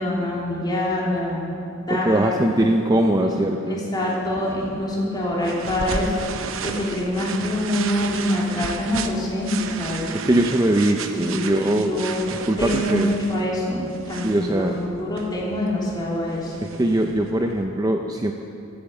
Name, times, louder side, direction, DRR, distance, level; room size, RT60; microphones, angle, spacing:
voice 1, 0.0-1.4 1.9-2.4 3.2-3.3 3.7-10.1 11.0-16.6, left 1 dB, 20° left, -5 dB, 3.2 m, -25 dB
voice 2, 2.0-3.8 10.2-12.0 12.5-13.2 14.2-14.8 16.7-18.3, right 1 dB, 20° right, 3 dB, 0.6 m, -21 dB
sound 1, 4.0-17.6, right 5 dB, 80° right, 0.8 m, -34 dB
14.5 x 8.7 x 7.8 m, 2.6 s
head